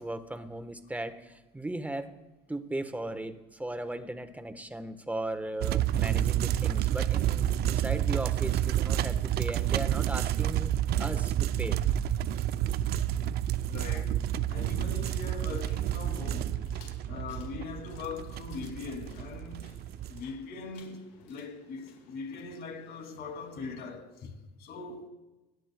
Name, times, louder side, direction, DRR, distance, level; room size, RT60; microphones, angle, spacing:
voice 1, 0.0-2.2 2.5-10.7 11.0-11.8, right 1 dB, 10° right, 1.2 m, -37 dB
sound 1, 5.6-20.2, right 11 dB, 60° right, 0.5 m, -29 dB
voice 2, 13.7-16.6 17.1-19.7 20.1-25.1, left 4 dB, 65° left, 2.9 m, -41 dB
sound 2, 14.9-23.7, left 5 dB, 85° left, 4.4 m, -58 dB
21.5 x 9.1 x 2.3 m
supercardioid pair, 70°, 18 cm